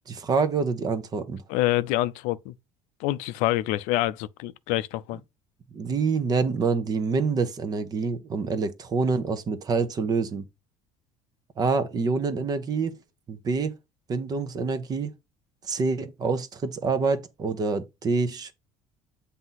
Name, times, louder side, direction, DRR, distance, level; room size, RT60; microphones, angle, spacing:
voice 1, 0.1-1.4 5.7-10.4 11.6-12.9 13.3-13.7 14.1-15.1 15.6-18.5, right 4 dB, 30° right, 0.9 m, -26 dB
voice 2, 1.5-2.5 3.0-5.2, left 16 dB, 90° left, 0.4 m, -26 dB
7.8 x 2.8 x 5.6 m
cardioid pair, 140°, 13 cm